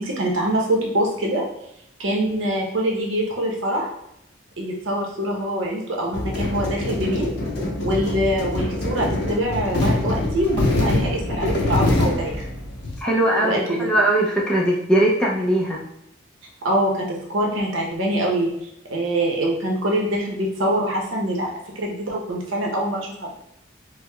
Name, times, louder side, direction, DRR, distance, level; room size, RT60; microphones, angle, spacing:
voice 1, 0.0-1.4 2.0-3.9 4.6-7.3 7.8-12.5 13.4-13.9 16.6-18.5 18.9-21.5 21.8-23.3, right 1 dB, 75° right, -1 dB, 0.7 m, -24 dB
sound 1, 6.1-13.0, left 1 dB, 55° left, 0.6 m, -24 dB
voice 2, 13.0-15.8, right 1 dB, 5° left, -4 dB, 0.4 m, -20 dB
4.5 x 2.0 x 2.2 m, 0.80 s
head